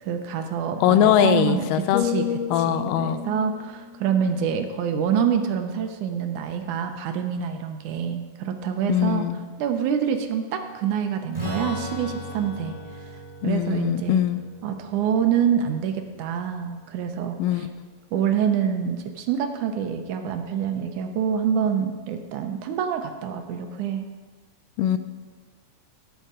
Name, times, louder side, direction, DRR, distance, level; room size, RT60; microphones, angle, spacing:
voice 1, 0.0-2.3 2.6-9.3 9.6-12.8 13.4-14.2 14.6-17.7 18.1-24.1, right 8 dB, 75° right, 6 dB, 2.2 m, -26 dB
voice 2, 0.8-2.0 2.5-3.2 8.9-9.4 13.4-14.4 17.4-17.7 24.8-25.0, left 11 dB, 90° left, 11 dB, 2.2 m, -21 dB
sound 1, 1.9-5.9 6.3-6.6, left 9 dB, 65° left, 2.2 m, -33 dB
Strum, 11.3-17.0, equal, 10° right, 3.8 m, -37 dB
17.0 x 7.3 x 3.7 m, 1.4 s
omnidirectional pair, 3.7 m